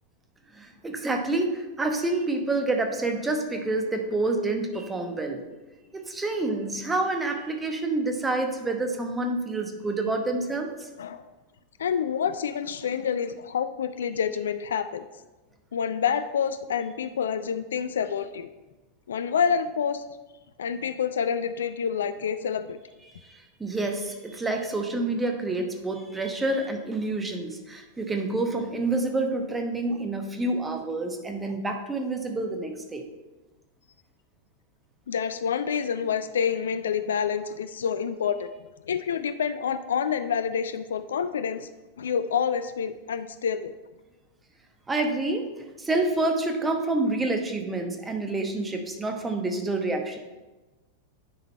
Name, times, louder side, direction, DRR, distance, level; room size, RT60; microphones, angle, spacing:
voice 1, 0.5-5.4 5.9-10.9 23.2-33.0 44.9-45.5 45.8-50.2, right 2 dB, 10° right, 4 dB, 1.0 m, -28 dB
voice 2, 11.8-15.1 15.7-18.5 19.1-20.0 20.6-22.8 35.1-38.5 38.9-41.7 42.0-43.7, left 7 dB, 65° left, 11 dB, 0.3 m, -28 dB
10.5 x 3.9 x 4.3 m, 1.1 s
figure-of-eight pair, 90°, 0 cm